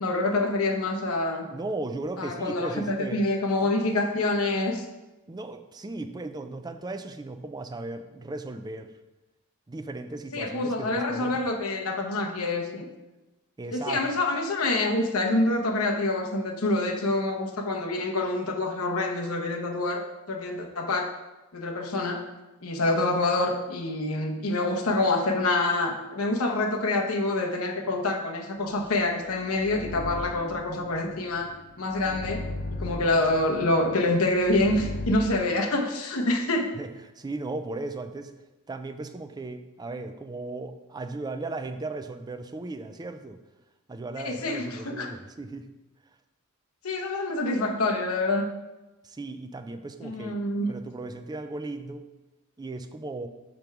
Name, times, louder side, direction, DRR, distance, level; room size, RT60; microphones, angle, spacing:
voice 1, 0.0-1.5 2.2-4.8 10.3-12.9 13.7-20.0 20.3-21.1 21.5-22.2 22.6-31.5 31.8-32.4 32.7-36.7 44.2-45.1 46.8-48.5 50.0-50.7, left 2 dB, 75° left, 2 dB, 0.9 m, -26 dB
voice 2, 1.5-3.3 5.3-8.9 9.7-11.4 13.6-14.0 36.7-36.9 37.2-38.3 38.7-43.4 43.9-45.7 49.0-50.4 50.7-52.0 52.6-53.3, right 2 dB, 20° right, 8 dB, 0.4 m, -36 dB
sound 1, 28.9-35.4, left 2 dB, 45° left, 0.5 m, -38 dB
5.2 x 4.6 x 5.9 m, 1.1 s
head